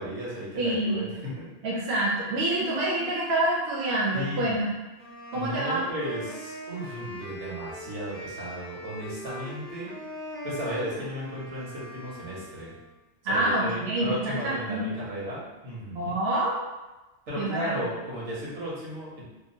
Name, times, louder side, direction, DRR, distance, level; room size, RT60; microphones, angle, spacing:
voice 1, 0.0-1.5 4.1-4.5 5.3-9.9 10.4-12.7 13.3-16.2 17.3-19.2, equal, 90° right, -6 dB, 1.2 m, -35 dB
voice 2, 0.6-1.1 1.6-4.7 5.3-5.8 13.2-14.8 15.9-16.6 17.4-17.8, right 1 dB, 70° right, -4 dB, 0.8 m, -27 dB
Wind instrument woodwind instrument, 5.0-12.9, equal, 20° left, 0.3 m, -41 dB
2.8 x 2.2 x 2.6 m, 1.1 s
omnidirectional pair, 1.2 m